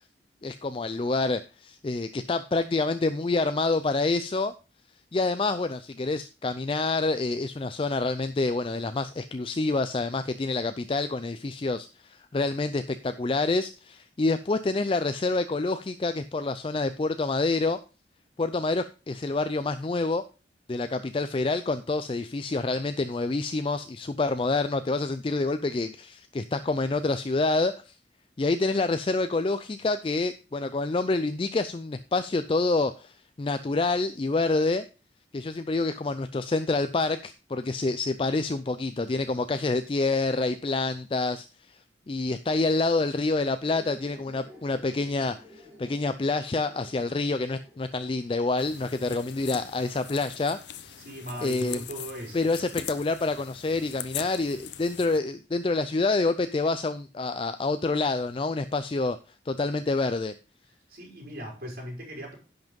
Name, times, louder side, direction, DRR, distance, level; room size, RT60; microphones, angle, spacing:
voice 1, 0.4-4.5 5.1-17.8 18.4-20.2 20.7-27.9 28.4-34.8 35.3-41.8 42.1-51.0 51.4-51.8 52.3-59.2 59.5-60.3, left 3 dB, 30° left, 11 dB, 0.4 m, -27 dB
sound 1, 43.6-51.2, equal, 15° right, 3.4 m, -53 dB
sound 2, 48.6-55.2, left 9 dB, 80° left, 0.8 m, -41 dB
voice 2, 51.0-52.4 60.9-62.3, equal, 55° right, -1 dB, 4.7 m, -38 dB
10.5 x 6.0 x 5.2 m, 0.34 s
head